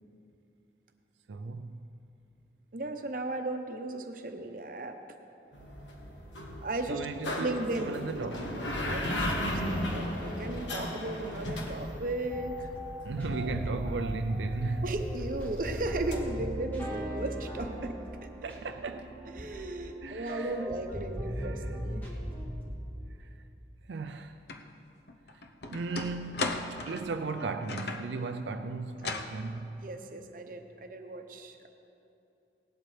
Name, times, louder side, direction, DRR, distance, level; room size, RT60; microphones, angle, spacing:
voice 1, 1.3-1.8 6.9-7.5 7.8-8.7 13.0-14.8 18.4-19.1 20.0-20.7 21.4-21.6 23.2-23.3 23.9-24.4 25.7-29.8, right 3 dB, 85° right, 0.4 m, -36 dB
voice 2, 2.7-5.0 6.6-7.1 7.4-8.0 8.4-8.6 8.8-12.7 14.8-18.0 18.2-18.3 19.3-22.1 29.8-31.7, right 2 dB, 50° right, 0.8 m, -36 dB
sound 1, 5.5-13.1 16.1-16.2, left 1 dB, 90° left, 1.5 m, -35 dB
sound 2, 12.3-22.7, equal, 10° left, 1.9 m, -38 dB
sound 3, 24.5-24.6 25.1-28.1 29.0-29.4, left 3 dB, 65° left, 0.7 m, -36 dB
18.0 x 11.5 x 3.3 m
head